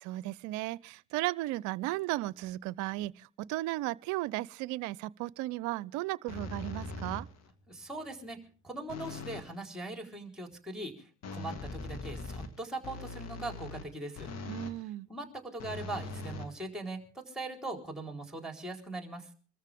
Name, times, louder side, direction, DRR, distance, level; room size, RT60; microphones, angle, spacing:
voice 1, 0.0-7.3 14.5-15.1, right 18 dB, 60° right, 0.7 m, -35 dB
sound 1, 6.3-7.5 8.9-9.6 11.2-14.8 15.6-17.1, left 3 dB, 50° left, 2.2 m, -41 dB
voice 2, 7.7-8.4 8.6-14.3 15.1-19.3, right 2 dB, ahead, 4.3 m, -40 dB
25.0 x 14.0 x 3.6 m
hypercardioid pair, 70°, 34 cm